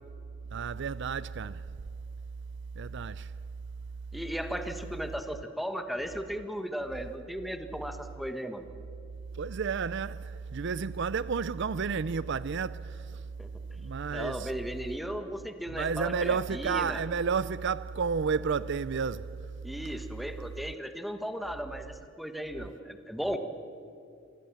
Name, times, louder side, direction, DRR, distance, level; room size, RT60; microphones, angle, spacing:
voice 1, 0.5-1.6 2.8-3.3 9.3-13.3 13.8-14.5 15.7-19.3, right 5 dB, 65° right, 0.5 m, -31 dB
voice 2, 4.1-8.6 13.4-13.5 14.1-17.0 19.6-23.4, equal, ahead, 1.4 m, -36 dB
27.5 x 24.0 x 7.2 m
head